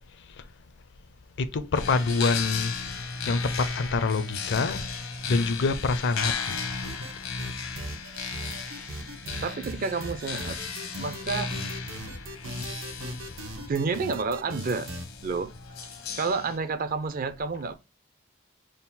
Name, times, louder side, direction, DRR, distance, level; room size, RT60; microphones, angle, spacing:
voice 1, 1.4-2.7 3.3-4.9 5.3-6.7, left 3 dB, 55° left, 0.5 m, -26 dB
sound 1, 1.7-16.6, left 5 dB, 80° left, 0.9 m, -35 dB
sound 2, 6.8-7.1 7.4-15.1, right 1 dB, 75° right, 0.9 m, -39 dB
voice 2, 9.4-10.6 11.0-11.6 13.7-14.9 15.2-15.5 16.2-17.8, right 4 dB, 45° right, 0.5 m, -29 dB
3.7 x 2.3 x 4.1 m
head